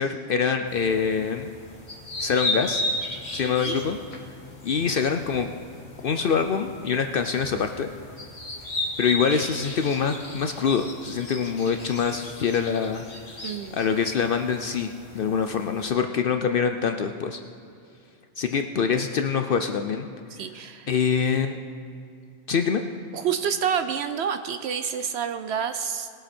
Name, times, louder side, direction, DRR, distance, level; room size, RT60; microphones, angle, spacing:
voice 1, 0.0-1.5 2.2-2.8 3.3-4.0 4.6-5.5 6.0-7.9 9.0-13.0 13.7-17.4 18.4-20.1 20.9-21.6 22.5-22.8, left 6 dB, 60° left, 6 dB, 0.7 m, -25 dB
sound 1, 0.7-15.9, left 1 dB, 40° left, 1.5 m, -35 dB
voice 2, 13.4-13.8 18.8-18.9 20.3-20.9 23.1-26.1, right 7 dB, 70° right, 9 dB, 0.8 m, -28 dB
20.5 x 8.0 x 4.3 m, 2.5 s
omnidirectional pair, 1.2 m